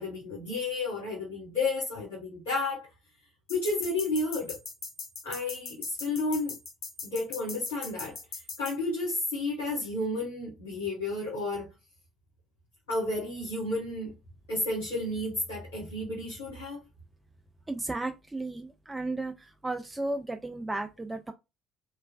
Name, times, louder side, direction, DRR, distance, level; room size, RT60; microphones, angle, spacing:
voice 1, 0.0-2.9 3.5-4.6 5.2-6.5 7.0-8.2 8.6-11.7 12.9-14.1 14.5-16.8, left 2 dB, 75° left, 1.1 m, -31 dB
sound 1, 3.5-8.7, left 4 dB, 50° left, 0.7 m, -40 dB
voice 2, 17.7-19.3 19.6-21.3, right 2 dB, 15° right, 0.4 m, -34 dB
3.1 x 2.1 x 2.2 m
figure-of-eight pair, 50°, 0 cm